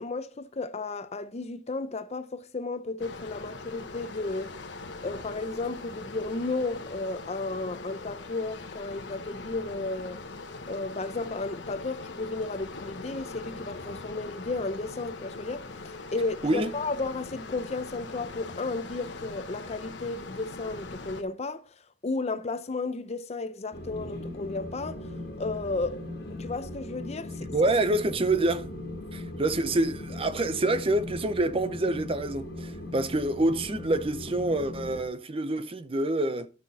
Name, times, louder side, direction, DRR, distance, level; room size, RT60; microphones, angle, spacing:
voice 1, 0.0-4.5 5.0-10.2 10.7-21.8 22.0-25.1 25.4-27.5, left 3 dB, 35° left, 0.6 m, -33 dB
sound 1, 3.0-21.2, left 3 dB, 80° left, 1.1 m, -41 dB
sound 2, 23.7-35.0, left 1 dB, 65° left, 1.7 m, -39 dB
voice 2, 27.5-28.7 29.1-36.5, right 2 dB, 30° right, 0.6 m, -27 dB
12.0 x 5.9 x 4.1 m
head